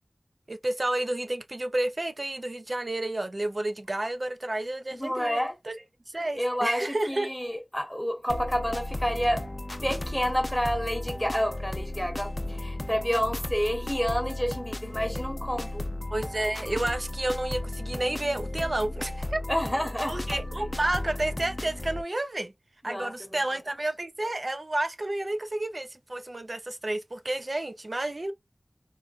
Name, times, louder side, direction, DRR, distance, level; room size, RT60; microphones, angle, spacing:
voice 1, 0.5-5.4 5.7-5.8 6.1-7.3 16.1-19.4 20.1-22.5 22.8-28.3, right 1 dB, 50° right, 0.5 m, -30 dB
voice 2, 4.9-5.5 6.3-9.5 9.8-15.9 19.5-20.2 22.8-23.4, equal, 5° left, 1.0 m, -29 dB
sound 1, 8.3-22.0, left 1 dB, 35° left, 0.5 m, -35 dB
3.7 x 2.1 x 2.4 m
wide cardioid pair, 50°, 0 cm